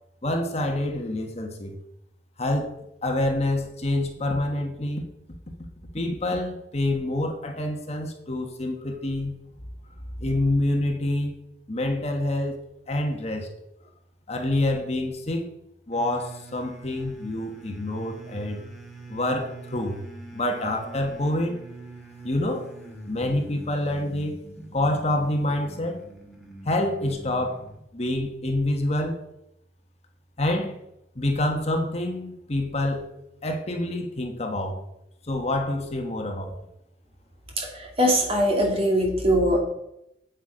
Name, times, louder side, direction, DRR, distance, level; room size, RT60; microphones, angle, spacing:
voice 1, 0.2-1.8 2.4-2.7 3.0-5.0 5.9-9.4 10.2-11.4 11.7-13.5 14.3-15.5 15.9-18.6 19.1-20.0 20.3-21.6 22.2-22.7 23.1-24.4 24.7-26.0 26.6-27.6 27.9-29.2 30.4-30.8 31.1-33.1 33.4-34.8 35.3-36.5, left 1 dB, 35° left, 4 dB, 1.2 m, -27 dB
Groaning Low, 15.9-27.8, right 2 dB, ahead, 1.8 m, -44 dB
voice 2, 37.6-39.6, equal, 35° right, 1 dB, 2.3 m, -22 dB
8.3 x 8.1 x 5.0 m, 0.81 s
head